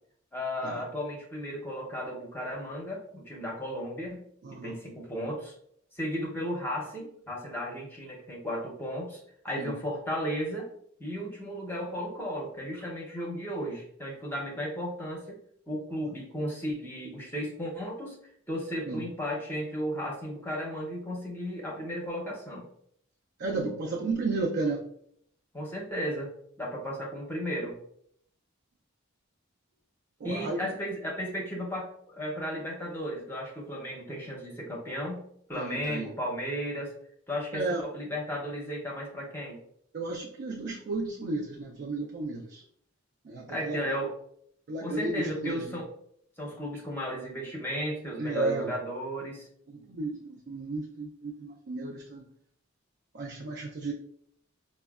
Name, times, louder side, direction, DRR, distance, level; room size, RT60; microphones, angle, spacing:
voice 1, 0.3-4.2 4.6-5.5 5.9-10.7 11.0-15.4 15.7-18.2 18.5-22.7 25.5-27.7 30.2-35.2 35.5-36.9 37.3-37.6 37.9-39.6 43.5-44.1 44.8-45.9 46.4-49.5, equal, 10° left, -2 dB, 0.6 m, -34 dB
voice 2, 4.4-4.8 9.5-9.7 18.9-19.0 23.4-24.9 30.2-30.7 35.5-36.1 37.5-37.8 39.9-42.6 43.2-44.0 44.7-45.8 48.1-48.7 49.7-52.3 53.1-53.9, right 3 dB, 55° right, -1 dB, 0.4 m, -33 dB
4.9 x 2.1 x 2.3 m, 0.68 s
head